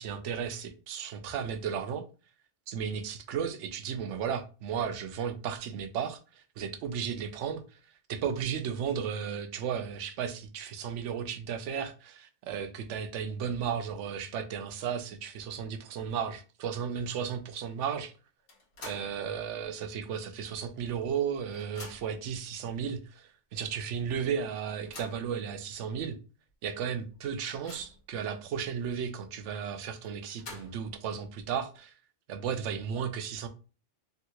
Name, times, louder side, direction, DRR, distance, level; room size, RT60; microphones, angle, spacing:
voice 1, 0.0-2.0 2.7-7.8 8.1-18.1 18.8-26.2 26.6-31.9 32.3-33.5, right 7 dB, 90° right, 0.9 m, -34 dB
sound 1, 18.5-19.2 19.6-19.7 20.8-20.9 21.2-22.3 23.0-23.1 23.5-23.6 24.6-25.3 26.0-26.1 26.5-26.6 27.1-28.1 30.0-31.0, left 3 dB, 55° left, 1.1 m, -48 dB
3.6 x 2.3 x 2.8 m
omnidirectional pair, 1.2 m